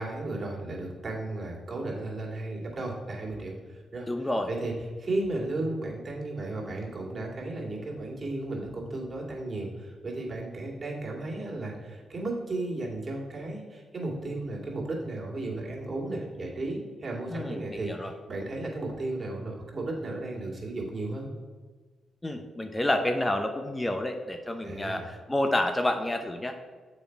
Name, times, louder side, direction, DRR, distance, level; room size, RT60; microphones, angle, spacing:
voice 1, 0.0-4.7 5.0-21.3 24.6-25.1, right 2 dB, 40° right, -2 dB, 2.2 m, -34 dB
voice 2, 4.1-4.5 17.3-18.1 22.2-26.6, left 1 dB, 20° left, 5 dB, 0.7 m, -29 dB
7.0 x 5.2 x 4.5 m, 1.4 s
supercardioid pair, 60°, 0 cm